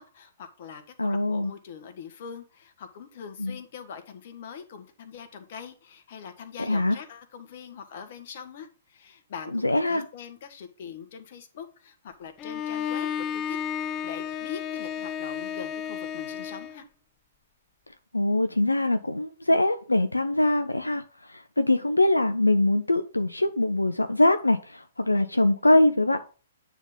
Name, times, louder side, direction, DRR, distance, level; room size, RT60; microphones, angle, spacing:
voice 1, 0.0-13.6 14.0-16.8, left 7 dB, 50° left, 1.4 m, -43 dB
voice 2, 1.0-1.5 3.4-3.6 6.7-7.0 9.6-10.0 18.1-21.0 21.3-26.2, left 1 dB, 90° left, 0.6 m, -23 dB
Bowed string instrument, 12.4-16.8, left 8 dB, 25° left, 0.4 m, -32 dB
9.0 x 3.7 x 5.3 m
figure-of-eight pair, 120°, 0 cm